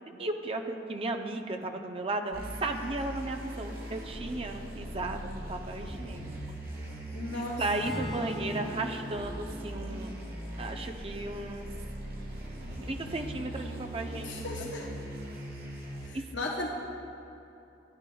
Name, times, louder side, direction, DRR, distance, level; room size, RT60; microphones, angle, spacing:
voice 1, 0.2-6.3 7.6-10.1 10.6-11.7 12.9-14.7 16.1-16.2, right 2 dB, 30° right, 4 dB, 0.5 m, -35 dB
sound 1, 2.3-16.1, right 1 dB, 55° right, 1.5 m, -40 dB
voice 2, 7.1-7.6 8.2-8.5 14.2-14.9 16.0-16.7, left 2 dB, 70° left, -2 dB, 0.8 m, -36 dB
Acoustic guitar / Strum, 7.8-12.0, left 1 dB, ahead, 2.1 m, -42 dB
14.0 x 10.0 x 2.3 m, 2.9 s
head